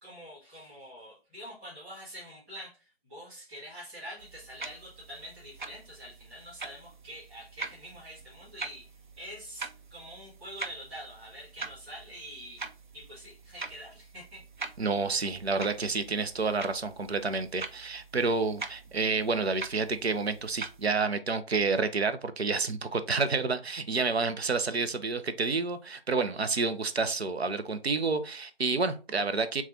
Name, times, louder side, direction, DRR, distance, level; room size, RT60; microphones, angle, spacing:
voice 1, 0.0-8.9 9.1-12.7 12.9-14.4, equal, 10° right, 1.5 m, -46 dB
sound 1, 4.2-20.9, right 4 dB, 50° right, 0.5 m, -44 dB
voice 2, 14.8-29.6, right 4 dB, 80° right, 0.8 m, -29 dB
7.3 x 2.5 x 2.7 m
figure-of-eight pair, 165°, 31 cm